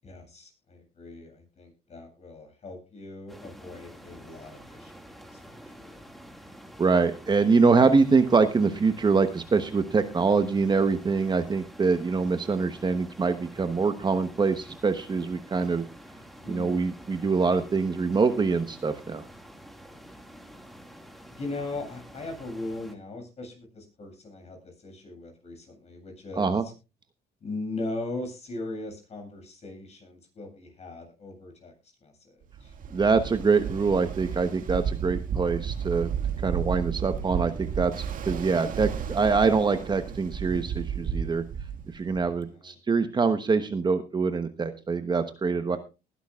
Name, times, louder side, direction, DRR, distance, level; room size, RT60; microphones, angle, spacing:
voice 1, 0.0-5.2 5.5-6.0 16.4-16.9 21.3-26.7 27.4-31.7 32.0-32.7 38.4-38.7 42.5-42.7 45.7-45.8, left 2 dB, 40° left, 3 dB, 8.0 m, -39 dB
sound 1, 3.3-23.0, equal, ahead, 2.1 m, -48 dB
voice 2, 6.8-15.8 16.5-19.2 26.4-26.6 32.9-36.1 36.4-41.4 41.9-45.8, right 4 dB, 25° right, 8 dB, 1.1 m, -24 dB
Ocean, 32.5-42.4, right 7 dB, 55° right, 2.0 m, -33 dB
20.5 x 11.5 x 2.4 m, 0.29 s
cardioid pair, 110°, 17 cm